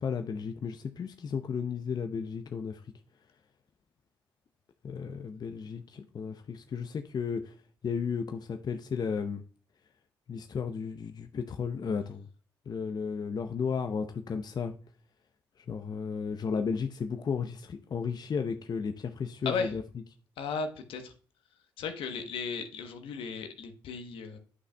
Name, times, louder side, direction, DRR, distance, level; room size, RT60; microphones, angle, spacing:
voice 1, 0.0-2.8 4.8-7.5 7.8-9.4 10.3-12.3 12.7-14.7 15.7-19.8, left 6 dB, 50° left, 0.6 m, -34 dB
voice 2, 20.4-21.1 21.8-24.4, left 5 dB, 75° left, 1.0 m, -35 dB
9.6 x 5.7 x 2.2 m
hypercardioid pair, 45°, 9 cm